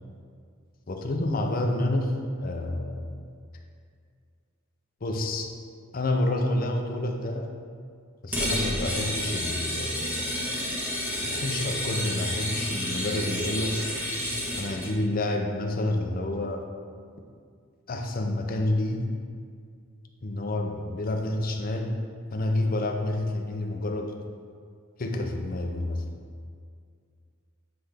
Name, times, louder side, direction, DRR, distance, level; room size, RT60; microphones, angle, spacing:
voice 1, 0.9-3.1 5.0-5.5 5.9-7.5 8.2-10.1 11.2-13.8 14.6-16.7 17.9-19.1 20.2-22.0 22.3-24.2 25.0-26.0, left 1 dB, 40° left, 3 dB, 0.5 m, -29 dB
sound 1, 8.3-14.9, equal, 10° right, 1.2 m, -30 dB
9.4 x 3.3 x 3.5 m, 2.2 s
head